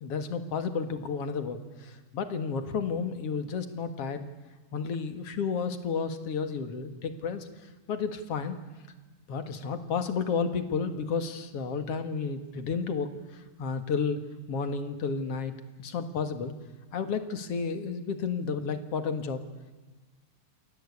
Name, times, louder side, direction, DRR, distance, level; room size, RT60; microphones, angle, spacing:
voice 1, 0.0-4.3 4.7-8.6 9.3-14.2 14.5-15.5 15.8-16.5 16.9-19.4, left 5 dB, 55° left, 8 dB, 2.5 m, -32 dB
28.5 x 21.5 x 8.5 m, 1.3 s
omnidirectional pair, 3.5 m